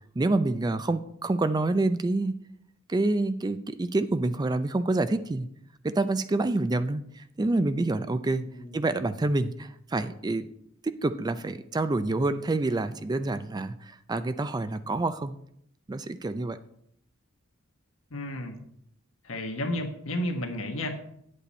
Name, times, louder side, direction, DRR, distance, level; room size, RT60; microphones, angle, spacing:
voice 1, 0.2-2.4 2.9-5.5 5.8-10.5 10.8-15.4 15.9-16.6, right 2 dB, 20° right, 12 dB, 0.4 m, -27 dB
voice 2, 8.5-8.8 18.1-18.6 19.2-20.9, left 1 dB, 80° left, 4 dB, 1.4 m, -32 dB
8.5 x 8.2 x 4.2 m, 0.70 s
head